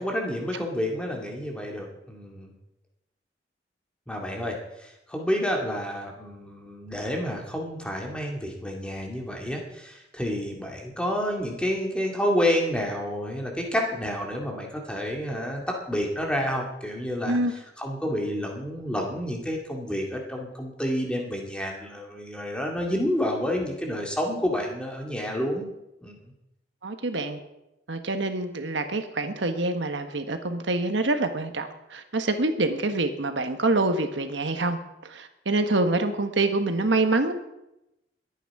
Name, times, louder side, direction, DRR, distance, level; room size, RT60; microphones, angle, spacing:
voice 1, 0.0-2.5 4.1-17.4 17.8-25.7 26.0-26.2, equal, 5° left, 0 dB, 2.2 m, -29 dB
voice 2, 26.8-27.4 27.9-37.3, right 2 dB, 80° right, 7 dB, 1.3 m, -26 dB
21.5 x 9.2 x 4.8 m, 0.90 s
head